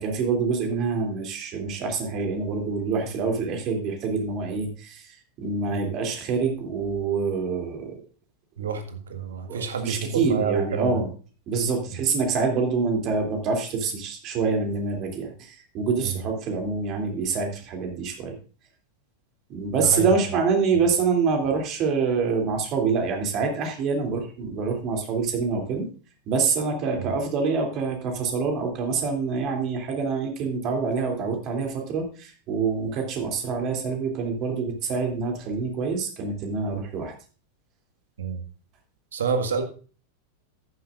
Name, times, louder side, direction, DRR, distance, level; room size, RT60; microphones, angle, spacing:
voice 1, 0.0-8.0 8.6-8.7 9.5-11.1 11.5-18.4 19.5-25.9 26.3-37.1, right 5 dB, 35° right, 2 dB, 2.9 m, -26 dB
voice 2, 8.6-11.0 16.0-16.2 19.7-20.1 27.0-27.1 38.2-38.4 39.1-39.6, right 5 dB, 65° right, 6 dB, 1.7 m, -28 dB
14.0 x 11.0 x 2.5 m, 0.38 s
figure-of-eight pair, 90°, 0 cm